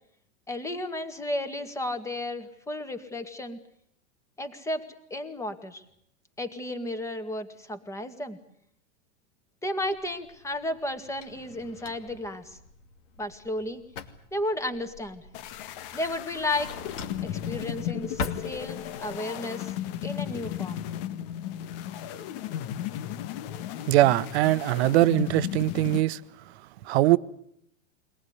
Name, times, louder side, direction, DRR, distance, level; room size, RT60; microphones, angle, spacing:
voice 1, 0.5-3.6 4.4-4.8 5.1-5.8 6.4-8.4 9.6-12.6 13.2-13.8 14.3-15.2 15.9-16.7 17.2-19.7 20.0-20.8, left 1 dB, 10° left, 2.0 m, -33 dB
Drawer open or close, 9.8-19.1, left 4 dB, 85° left, 2.7 m, -42 dB
sound 1, 15.3-26.0, left 11 dB, 50° left, 1.5 m, -35 dB
voice 2, 23.9-26.2 26.8-27.2, right 16 dB, 60° right, 1.0 m, -21 dB
24.0 x 18.5 x 9.6 m
supercardioid pair, 135°, 36 cm